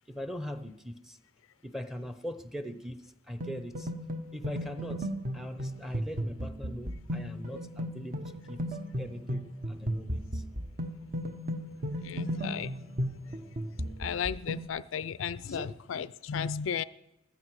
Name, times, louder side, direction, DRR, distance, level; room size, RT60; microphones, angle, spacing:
voice 1, 0.1-1.2 1.6-3.0 3.3-3.9 4.3-5.1 5.3-8.6 9.0-10.4 15.4-15.7, equal, ahead, 0.7 m, -41 dB
sound 1, 3.4-14.7, equal, 45° right, 1.0 m, -35 dB
voice 2, 12.0-12.7 14.0-16.8, left 7 dB, 85° left, 0.4 m, -34 dB
15.0 x 13.5 x 4.7 m
head